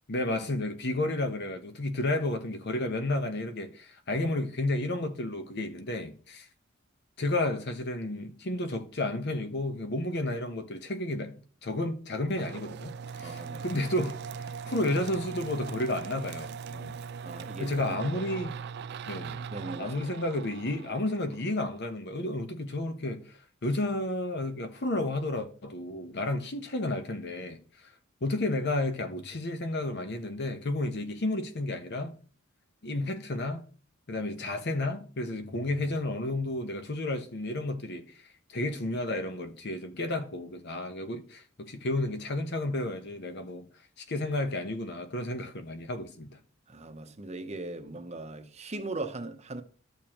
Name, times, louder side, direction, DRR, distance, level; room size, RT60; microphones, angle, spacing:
voice 1, 0.1-6.5 7.2-16.9 17.6-18.6 19.1-19.5 19.8-27.6 28.2-32.2 32.8-33.6 34.1-38.1 38.5-43.7 44.1-46.4, left 2 dB, 55° left, 1.0 m, -32 dB
sound 1, 12.3-21.9, right 6 dB, 55° right, 0.3 m, -40 dB
voice 2, 13.2-13.6 17.2-18.0 19.5-20.1 46.7-49.6, right 2 dB, 30° right, 0.8 m, -39 dB
12.5 x 6.9 x 3.0 m
head